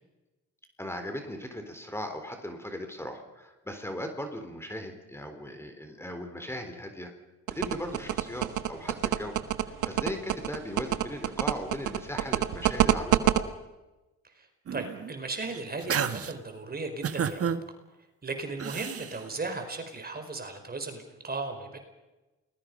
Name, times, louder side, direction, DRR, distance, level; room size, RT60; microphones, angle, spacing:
voice 1, 0.8-7.1 7.5-13.3, left 1 dB, 10° left, 6 dB, 4.0 m, -38 dB
sound 1, 7.5-13.4, right 13 dB, 80° right, 1.4 m, -25 dB
voice 2, 14.7-17.5 18.2-21.8, right 3 dB, 30° right, 6 dB, 4.7 m, -36 dB
sound 2, 14.7-15.1 15.5-16.3 17.0-17.6 18.6-19.2, right 8 dB, 50° right, 1.5 m, -31 dB
29.0 x 21.0 x 5.4 m, 1.1 s
cardioid pair, 90°, 30 cm